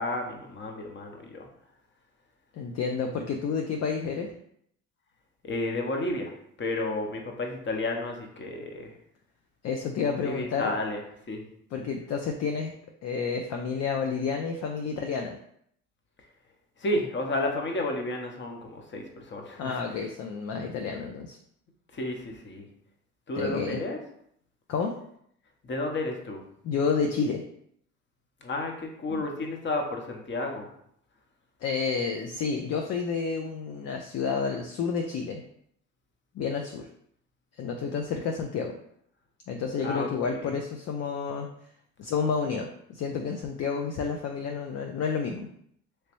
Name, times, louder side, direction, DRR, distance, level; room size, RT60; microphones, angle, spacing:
voice 1, 0.0-1.5 5.4-6.3 6.6-8.9 10.1-11.0 11.3-11.4 16.8-19.8 21.9-22.7 23.3-24.0 25.6-26.4 28.4-30.7 39.8-40.1 40.4-40.5, left 2 dB, 35° left, 2 dB, 0.9 m, -32 dB
voice 2, 2.5-4.3 9.6-10.7 11.7-12.7 13.0-15.4 19.6-21.4 23.4-23.8 24.7-25.0 26.6-27.4 29.1-29.2 31.6-35.4 36.3-36.9 37.6-38.7 39.5-41.5 42.0-45.5, left 5 dB, 55° left, 3 dB, 0.5 m, -30 dB
3.2 x 3.0 x 3.0 m, 0.69 s
supercardioid pair, 70°, 31 cm